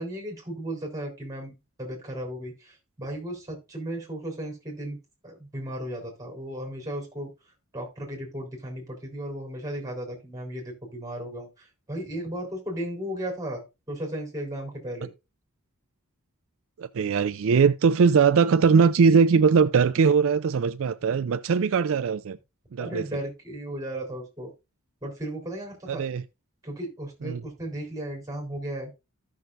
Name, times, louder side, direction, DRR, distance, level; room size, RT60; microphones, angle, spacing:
voice 1, 0.0-1.5 1.8-5.0 5.2-7.3 7.7-15.1 22.8-24.5 25.0-26.0 26.6-28.9, right 1 dB, 15° right, 3.7 m, -35 dB
voice 2, 16.8-22.4 22.7-23.2 25.9-26.2 27.2-27.4, right 5 dB, 65° right, 0.4 m, -21 dB
14.5 x 6.2 x 2.5 m
head